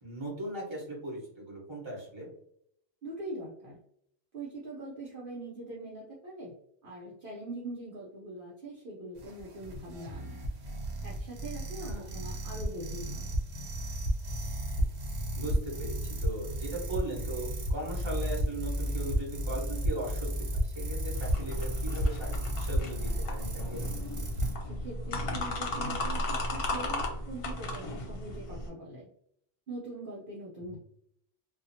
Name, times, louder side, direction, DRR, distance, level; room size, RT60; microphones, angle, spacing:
voice 1, 0.0-2.3 11.8-12.1 12.4-12.7 15.4-22.3 22.6-23.9 30.6-30.8, right 1 dB, 25° right, -4 dB, 1.2 m, -39 dB
voice 2, 3.0-3.8 4.3-6.5 6.8-10.4 11.0-13.3 24.6-29.1 29.7-30.8, right 2 dB, 60° right, -5 dB, 0.8 m, -42 dB
sound 1, 9.2-24.5, equal, 80° right, 1.0 m, -33 dB
sound 2, 21.1-28.7, left 1 dB, 70° left, 0.9 m, -35 dB
2.7 x 2.4 x 2.6 m, 0.69 s
omnidirectional pair, 1.1 m